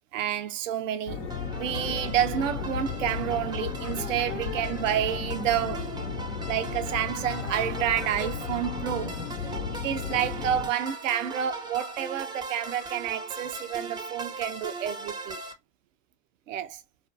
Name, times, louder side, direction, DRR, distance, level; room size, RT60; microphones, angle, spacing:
voice 1, 0.1-1.3 1.6-5.9 6.5-9.2 9.7-15.4 16.5-16.8, right 10 dB, 85° right, 0.5 m, -29 dB
sound 1, 1.1-10.7, left 6 dB, 80° left, 0.8 m, -34 dB
sound 2, 1.3-15.5, right 2 dB, 10° right, 0.5 m, -40 dB
2.4 x 2.2 x 2.4 m
hypercardioid pair, 75°, 37 cm